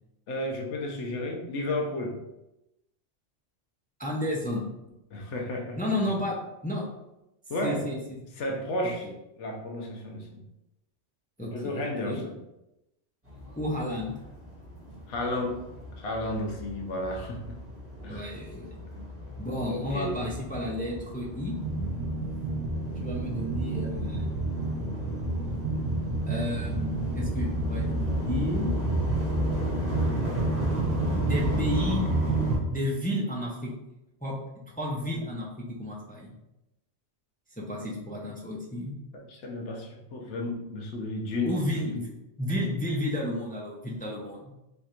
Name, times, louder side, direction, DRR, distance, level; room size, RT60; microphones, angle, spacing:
voice 1, 0.3-2.2 5.1-5.8 7.5-7.9 8.4-9.1 9.4-10.4 11.4-12.4 15.1-15.7 16.0-17.6 18.0-18.3 19.7-20.2 39.1-41.6 41.8-42.0, left 1 dB, 75° left, 1 dB, 1.0 m, -32 dB
voice 2, 4.0-4.7 5.8-6.9 7.6-8.0 9.0-9.1 11.4-12.2 13.6-14.1 18.1-18.7 19.4-21.5 23.0-24.3 25.4-25.5 26.3-28.7 31.1-32.0 32.7-33.7 34.2-34.3 34.8-36.3 37.6-38.9 41.4-42.1 42.4-44.5, left 1 dB, 15° left, -3 dB, 0.3 m, -32 dB
sound 1, 13.2-32.6, left 1 dB, 10° right, 1.1 m, -35 dB
sound 2, 21.6-32.6, right 3 dB, 85° right, 1.1 m, -30 dB
3.3 x 2.5 x 4.2 m, 0.91 s
omnidirectional pair, 1.2 m